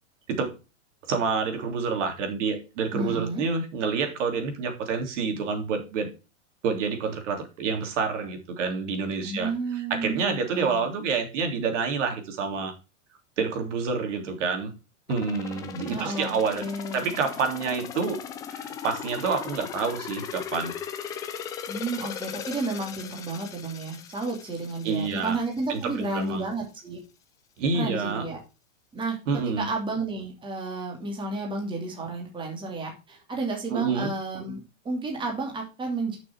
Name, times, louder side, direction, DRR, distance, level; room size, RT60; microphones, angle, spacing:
voice 1, 1.1-6.1 6.6-9.5 9.9-12.7 13.4-14.7 15.1-16.7 16.9-18.2 18.5-20.7 24.8-25.4 25.7-26.4 27.6-28.2 29.3-29.6 33.7-34.1, right 5 dB, 60° right, 5 dB, 3.4 m, -28 dB
voice 2, 2.9-3.4 9.2-10.9 15.9-17.2 21.7-27.0 27.7-28.4 28.9-29.2 29.6-34.6 34.8-36.2, right 3 dB, 10° right, 0 dB, 2.7 m, -32 dB
sound 1, 15.1-25.8 26.2-26.3, left 8 dB, 10° left, 0.4 m, -38 dB
11.0 x 6.4 x 4.5 m, 0.30 s
supercardioid pair, 155°, 41 cm